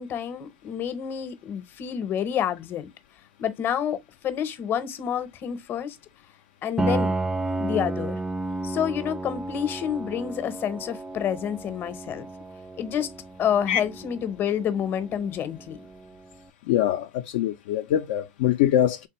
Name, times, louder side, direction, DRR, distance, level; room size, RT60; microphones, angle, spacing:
voice 1, 0.0-2.9 3.4-6.0 6.6-7.1 7.6-8.2 8.6-12.3 12.8-13.1 13.4-15.8, left 9 dB, 35° left, 0.7 m, -28 dB
Piano, 6.8-16.4, right 2 dB, 5° right, 0.3 m, -32 dB
voice 2, 16.7-19.1, left 11 dB, 70° left, 0.3 m, -23 dB
3.4 x 3.3 x 2.9 m
hypercardioid pair, 110°, 6 cm